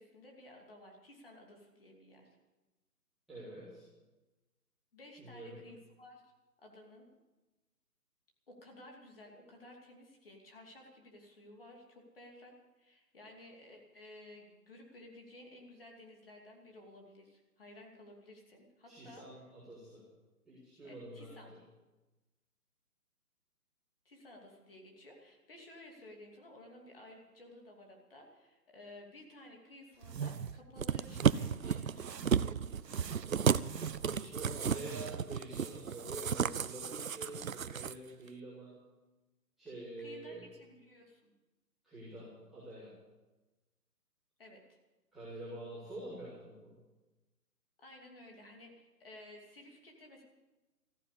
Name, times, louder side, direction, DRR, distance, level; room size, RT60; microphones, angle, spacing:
voice 1, 0.0-2.3 4.9-6.2 6.6-7.1 8.5-19.3 20.8-21.5 24.0-32.1 40.0-41.3 44.4-44.8 47.8-50.2, left 1 dB, 35° left, 1 dB, 2.8 m, -55 dB
voice 2, 3.3-3.8 5.2-5.6 18.9-20.1 20.4-21.6 34.0-38.8 39.6-40.5 41.8-42.9 45.1-46.7, right 1 dB, ahead, -18 dB, 1.7 m, -47 dB
sound 1, 30.0-30.6 31.0-31.6 32.0-32.5 32.8-34.2 34.6-35.3, right 7 dB, 85° right, 1.0 m, -43 dB
sound 2, 30.8-37.9 38.3-38.4, right 7 dB, 60° right, 0.5 m, -33 dB
14.5 x 10.0 x 8.4 m, 1.1 s
hypercardioid pair, 175°, 48 cm